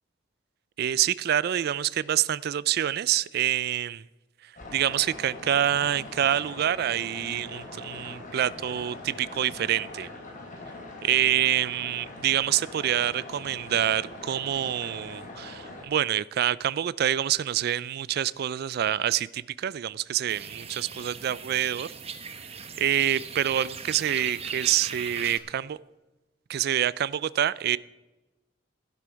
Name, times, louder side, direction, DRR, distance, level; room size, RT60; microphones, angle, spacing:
voice 1, 0.8-4.0 4.4-10.1 11.0-21.9 22.8-25.8 26.5-27.8, right 11 dB, 55° right, 20 dB, 0.3 m, -26 dB
sound 1, 4.6-15.8, left 2 dB, 45° left, 3.4 m, -42 dB
sound 2, 20.3-25.4, right 6 dB, 35° right, 0.9 m, -38 dB
12.0 x 11.5 x 4.5 m, 1.1 s
head